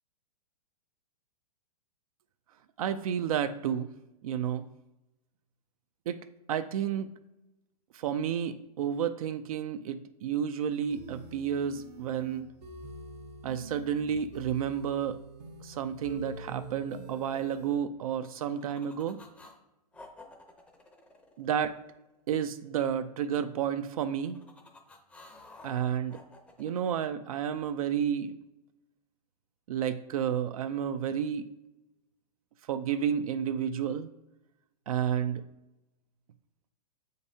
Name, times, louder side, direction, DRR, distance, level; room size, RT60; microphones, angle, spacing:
voice 1, 2.8-3.9 4.2-4.7 6.1-6.2 6.5-7.1 7.9-12.5 13.4-15.2 15.6-19.2 21.4-21.8 22.3-24.4 25.6-26.2 26.6-28.4 29.7-31.5 32.7-34.1 34.9-35.4, right 8 dB, 60° right, 10 dB, 0.4 m, -31 dB
sound 1, 10.9-17.7, right 3 dB, 80° right, 1.1 m, -45 dB
sound 2, 18.1-19.6 19.9-22.1 23.9-26.9, left 2 dB, 5° left, 0.6 m, -53 dB
7.2 x 5.2 x 2.7 m, 0.97 s
hypercardioid pair, 150°, 20 cm